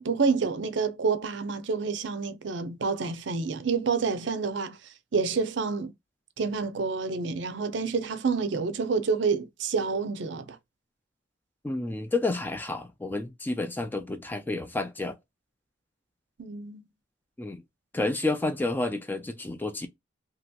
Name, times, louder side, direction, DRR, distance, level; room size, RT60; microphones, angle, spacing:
voice 1, 0.0-4.8 5.1-5.9 6.4-10.6 16.4-16.8, right 4 dB, 65° right, 0.5 m, -28 dB
voice 2, 11.6-15.2 17.4-17.6 17.9-19.9, left 2 dB, 10° left, 0.3 m, -30 dB
2.9 x 2.7 x 2.3 m
head